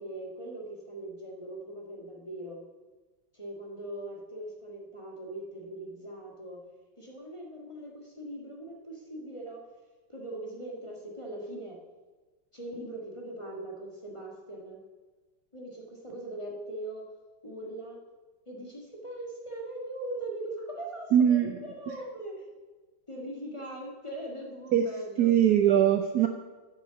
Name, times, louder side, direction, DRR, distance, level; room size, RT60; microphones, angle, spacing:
voice 1, 0.0-2.6 3.3-6.6 7.0-9.6 10.1-11.8 12.5-14.8 15.5-17.1 17.4-18.0 18.5-22.5 23.1-25.3, right 1 dB, 15° left, -2 dB, 1.4 m, -40 dB
voice 2, 21.1-21.6 21.9-22.0 24.7-24.8 25.2-26.3, right 10 dB, 70° right, 7 dB, 1.0 m, -22 dB
8.4 x 7.7 x 6.8 m, 1.3 s
omnidirectional pair, 2.1 m